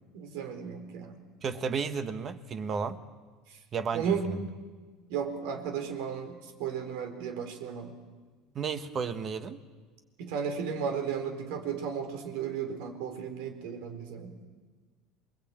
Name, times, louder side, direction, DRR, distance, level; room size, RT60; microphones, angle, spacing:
voice 1, 0.1-1.1 3.9-4.3 5.1-7.9 10.2-14.4, right 7 dB, 70° right, 7 dB, 4.3 m, -34 dB
voice 2, 1.4-3.0 3.7-4.4 8.5-9.6, right 5 dB, 25° right, 10 dB, 1.3 m, -33 dB
28.0 x 21.5 x 9.0 m, 1.4 s
cardioid pair, 160°, 0 cm